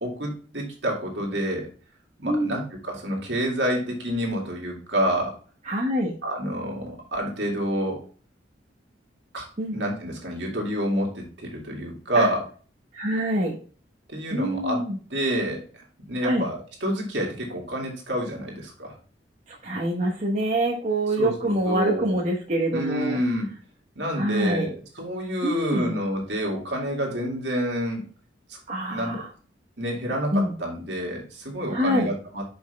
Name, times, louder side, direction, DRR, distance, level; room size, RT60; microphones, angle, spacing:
voice 1, 0.0-1.7 2.2-5.4 6.2-8.1 9.3-12.5 14.1-14.8 15.1-15.7 16.1-19.0 21.2-22.1 22.7-23.5 23.9-28.0 28.5-28.6 28.9-29.2 29.8-32.4, equal, 65° right, -1 dB, 2.4 m, -28 dB
voice 2, 2.2-2.6 5.6-6.1 9.6-9.7 12.1-12.3 12.9-13.6 14.3-15.0 16.2-16.4 19.5-23.2 24.1-24.7 25.4-25.9 28.7-29.3 30.3-30.5 31.7-32.1, right 1 dB, 40° right, -2 dB, 1.1 m, -25 dB
6.2 x 5.3 x 3.4 m, 0.38 s
head